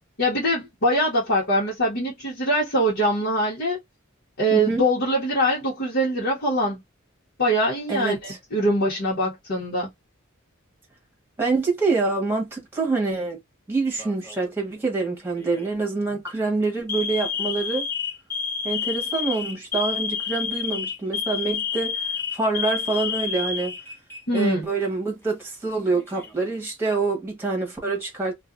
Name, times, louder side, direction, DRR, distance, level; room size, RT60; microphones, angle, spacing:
voice 1, 0.2-3.8 4.4-6.8 7.4-9.9 24.3-24.7, equal, 55° left, 1.2 m, -23 dB
voice 2, 4.5-4.8 7.9-8.4 11.4-13.4 13.7-17.9 18.6-22.0 22.3-23.8 24.3-28.3, right 3 dB, 10° right, 1.2 m, -26 dB
Alarm, 14.0-14.5 15.4-15.7 16.1-16.3 16.9-24.4 24.7-24.9 25.8-26.5, left 6 dB, 10° left, 0.8 m, -29 dB
2.5 x 2.5 x 2.5 m
head